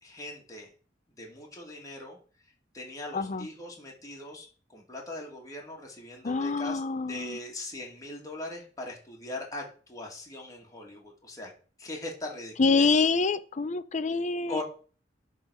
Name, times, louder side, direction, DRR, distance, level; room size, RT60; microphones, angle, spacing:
voice 1, 0.0-0.7 1.2-2.2 2.7-6.8 7.1-11.5 11.8-12.9 14.5-14.6, left 2 dB, 20° left, 2.2 m, -40 dB
voice 2, 3.1-3.5 6.2-7.4 12.6-14.6, left 4 dB, 40° left, 0.6 m, -26 dB
10.5 x 4.0 x 6.3 m
head